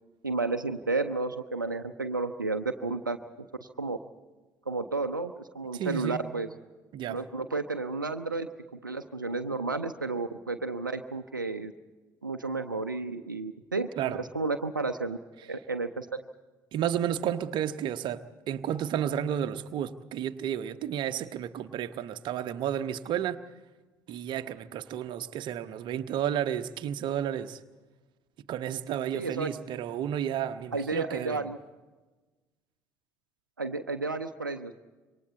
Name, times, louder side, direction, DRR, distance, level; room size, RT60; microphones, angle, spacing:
voice 1, 0.2-3.2 3.6-4.0 4.7-6.5 7.1-8.5 8.8-11.7 12.2-13.9 14.2-15.2 15.5-16.2 29.1-29.5 30.7-31.6 33.6-34.7, right 3 dB, 85° right, 0.6 m, -32 dB
voice 2, 5.7-6.2 6.9-7.2 14.0-14.2 16.7-23.4 24.1-27.6 28.5-31.4, right 10 dB, 50° right, 1.0 m, -32 dB
27.0 x 23.5 x 4.2 m
figure-of-eight pair, 55°, 10 cm